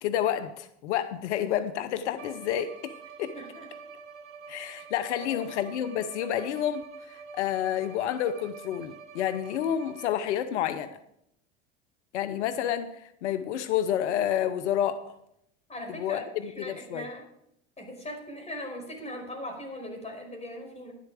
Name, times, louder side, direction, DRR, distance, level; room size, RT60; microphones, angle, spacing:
voice 1, 0.0-3.3 4.5-11.0 12.1-15.1 15.9-17.1, left 10 dB, 85° left, 0.8 m, -29 dB
Bowed string instrument, 2.1-10.4, right 5 dB, 90° right, 1.4 m, -47 dB
voice 2, 3.3-3.7 5.1-5.5 15.7-17.2 17.8-20.9, left 1 dB, 20° left, 5.0 m, -40 dB
11.5 x 11.0 x 4.8 m
hypercardioid pair, 90°, 34 cm